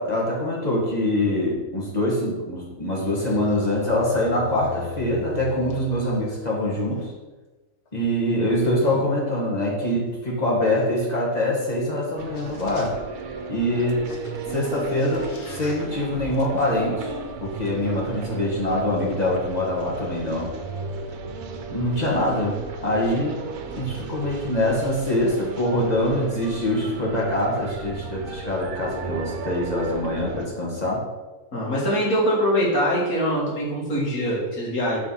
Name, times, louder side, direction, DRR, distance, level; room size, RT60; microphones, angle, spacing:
voice 1, 0.0-7.1 7.9-12.9 13.5-14.0 14.5-17.1 17.4-20.5 21.7-22.6 22.8-23.4 23.8-31.0, left 1 dB, 25° left, -4 dB, 1.5 m, -24 dB
sound 1, 3.1-7.1 7.9-8.0 8.8-9.0 11.0-11.1 12.1-12.2 12.3-13.1 13.6-18.6, left 2 dB, 50° left, 1.2 m, -41 dB
sound 2, 12.2-30.5, right 4 dB, 75° right, 1.2 m, -35 dB
voice 2, 31.5-35.0, equal, 65° left, -5 dB, 2.3 m, -23 dB
5.3 x 4.6 x 5.6 m, 1.2 s
omnidirectional pair, 1.6 m